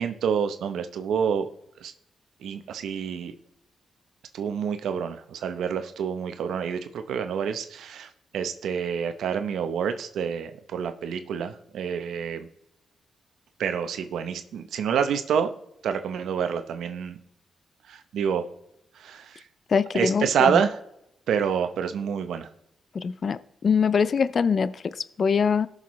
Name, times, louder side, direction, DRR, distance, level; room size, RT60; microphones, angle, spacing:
voice 1, 0.0-1.5 1.8-1.9 2.4-3.3 4.3-12.5 13.6-15.5 15.8-17.2 17.9-18.5 19.0-19.4 19.9-20.8 21.3-22.5, right 7 dB, 85° right, 9 dB, 0.7 m, -27 dB
voice 2, 19.7-20.6 22.9-25.7, left 6 dB, 50° left, 15 dB, 0.4 m, -23 dB
17.5 x 6.4 x 3.1 m, 0.80 s
cardioid pair, 90°, 0 cm